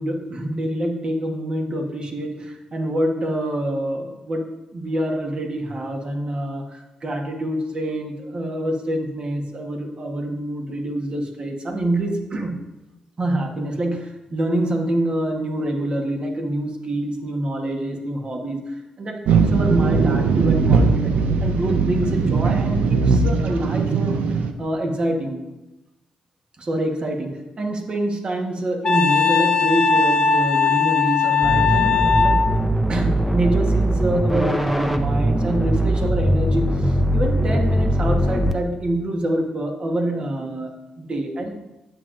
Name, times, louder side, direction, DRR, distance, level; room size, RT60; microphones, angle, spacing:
voice 1, 0.0-12.6 13.2-18.7 19.0-24.2 24.6-25.4 26.6-32.0 32.2-32.4 32.9-41.5, right 1 dB, 45° right, 3 dB, 1.2 m, -26 dB
sound 1, 19.3-24.5, right 4 dB, 85° right, 0.5 m, -19 dB
Wind instrument woodwind instrument, 28.8-32.5, left 6 dB, 40° left, 0.7 m, -19 dB
sound 2, 31.4-38.5, right 1 dB, 10° right, 0.7 m, -21 dB
9.3 x 7.2 x 2.5 m, 0.99 s
cardioid pair, 70°, 2 cm